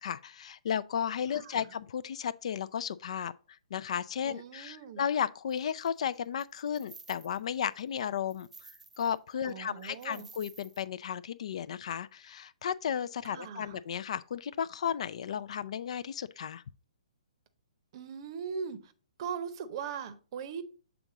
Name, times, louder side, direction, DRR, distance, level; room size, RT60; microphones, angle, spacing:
voice 1, 0.0-3.3 3.7-8.7 9.0-16.6, left 8 dB, 60° left, 0.3 m, -34 dB
voice 2, 1.3-1.7 4.2-5.0 9.4-10.3 13.2-13.8 17.9-18.9 19.2-20.6, right 7 dB, 45° right, 0.7 m, -40 dB
sound 1, 5.5-5.9 6.4-7.6 8.0-9.2 9.5-9.6 9.8-10.8, right 4 dB, 90° right, 0.7 m, -53 dB
6.9 x 3.6 x 3.8 m
hypercardioid pair, 130°, 4 cm